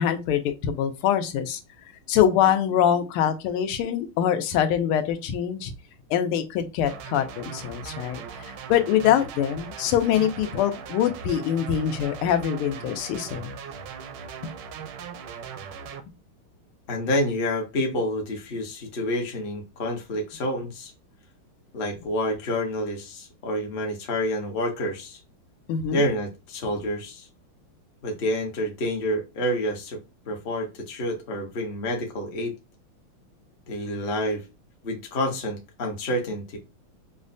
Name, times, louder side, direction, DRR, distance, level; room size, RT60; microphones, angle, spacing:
voice 1, 0.0-1.6 2.1-5.7 6.1-13.6 25.7-26.0, left 9 dB, 90° left, 1.5 m, -24 dB
sound 1, 6.9-16.0, right 6 dB, 75° right, 1.0 m, -39 dB
voice 2, 16.9-20.9 21.7-25.2 25.9-27.3 28.0-30.0 30.3-32.6 33.7-34.4 34.8-36.6, left 1 dB, 45° left, 0.7 m, -28 dB
5.3 x 2.1 x 2.5 m
omnidirectional pair, 2.4 m